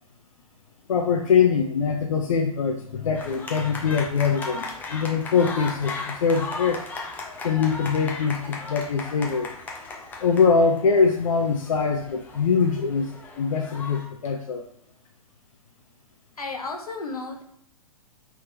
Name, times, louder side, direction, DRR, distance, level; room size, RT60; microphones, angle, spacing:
voice 1, 0.9-6.8 7.4-9.5 10.2-14.6, left 5 dB, 60° left, 4 dB, 0.4 m, -23 dB
sound 1, 3.1-14.1, left 3 dB, 10° left, 0.5 m, -37 dB
voice 2, 16.4-17.4, left 3 dB, 80° left, 3 dB, 0.8 m, -33 dB
3.3 x 2.8 x 3.3 m, 0.75 s
figure-of-eight pair, 115°, 19 cm